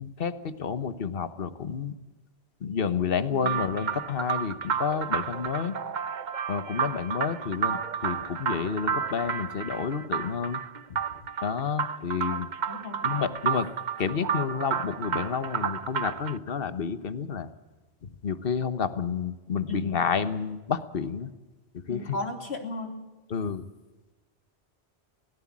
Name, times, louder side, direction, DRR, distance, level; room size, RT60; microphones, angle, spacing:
voice 1, 0.0-1.9 2.6-5.7 6.5-10.6 10.9-11.0 11.4-12.5 13.0-13.7 14.0-17.5 18.0-21.3 21.7-22.2 23.3-23.7, left 6 dB, 60° left, 12 dB, 1.4 m, -30 dB
sound 1, 3.4-16.4, right 7 dB, 50° right, 0.9 m, -31 dB
voice 2, 12.7-13.0 19.7-20.0 21.9-23.0, left 2 dB, 80° left, 4 dB, 3.1 m, -35 dB
22.5 x 18.0 x 7.4 m, 1.2 s
omnidirectional pair, 1.1 m